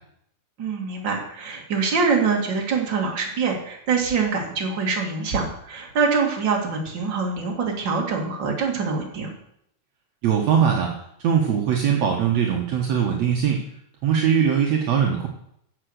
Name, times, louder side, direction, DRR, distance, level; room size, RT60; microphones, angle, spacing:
voice 1, 0.6-9.3, right 5 dB, 40° right, -1 dB, 2.8 m, -24 dB
voice 2, 10.2-10.9 11.2-13.6 14.0-15.3, right 8 dB, 65° right, -1 dB, 2.3 m, -21 dB
11.0 x 8.0 x 6.5 m, 0.73 s
omnidirectional pair, 3.6 m